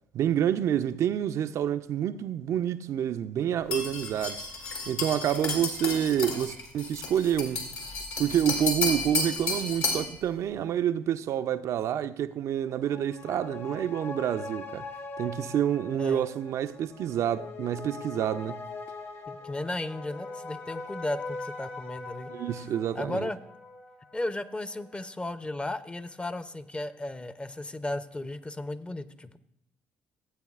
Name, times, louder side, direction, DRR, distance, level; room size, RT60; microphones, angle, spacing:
voice 1, 0.1-4.4 4.9-7.7 8.2-14.9 15.2-18.6 22.3-23.3, right 10 dB, 60° right, 0.4 m, -28 dB
sound 1, 3.7-10.1, left 3 dB, 70° left, 2.2 m, -32 dB
sound 2, 12.6-25.5 25.8-25.9, left 3 dB, 55° left, 1.4 m, -42 dB
voice 2, 19.3-22.3 22.9-23.4 24.1-29.4, left 2 dB, 20° left, 0.6 m, -35 dB
15.5 x 8.2 x 2.4 m
hypercardioid pair, 50°, 6 cm